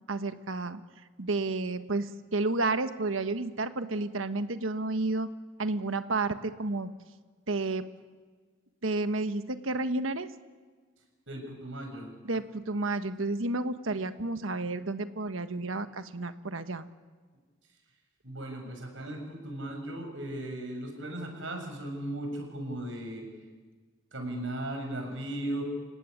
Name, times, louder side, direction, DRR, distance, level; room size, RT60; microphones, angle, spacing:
voice 1, 0.1-0.8 1.2-5.3 5.6-6.9 7.5-7.9 8.8-10.3 12.2-16.9, right 2 dB, 90° right, 10 dB, 1.3 m, -31 dB
voice 2, 11.3-12.1 18.2-23.3 24.1-25.6, right 1 dB, 70° right, 3 dB, 6.9 m, -37 dB
29.0 x 17.0 x 9.7 m, 1.4 s
head